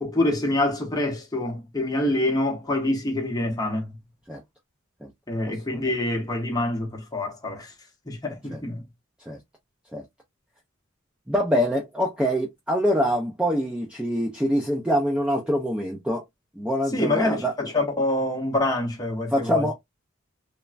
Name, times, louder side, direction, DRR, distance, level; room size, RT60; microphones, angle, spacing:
voice 1, 0.0-4.0 5.3-7.7 8.1-8.8 16.9-19.7, left 1 dB, 20° left, 0.8 m, -26 dB
voice 2, 11.3-16.2 16.6-17.5 19.3-19.7, equal, 5° right, 0.4 m, -25 dB
3.1 x 2.1 x 2.3 m
head